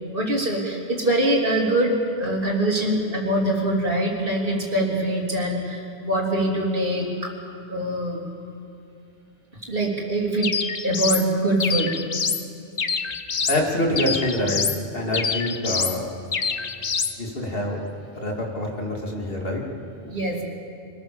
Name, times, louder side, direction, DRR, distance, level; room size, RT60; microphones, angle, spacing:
voice 1, 0.1-7.3 7.7-8.2 9.5-10.5 10.8-11.9 20.0-20.4, right 1 dB, 55° right, -3 dB, 3.6 m, -23 dB
sound 1, 10.4-11.3 11.6-12.4 12.8-13.6 14.0-14.8 15.1-16.0 16.3-17.1, left 5 dB, 40° left, 0.8 m, -26 dB
voice 2, 13.5-14.6 14.9-16.1 17.2-17.8 18.1-19.6, left 1 dB, 60° left, -1 dB, 3.0 m, -26 dB
24.5 x 18.5 x 7.2 m, 2.5 s
omnidirectional pair, 1.1 m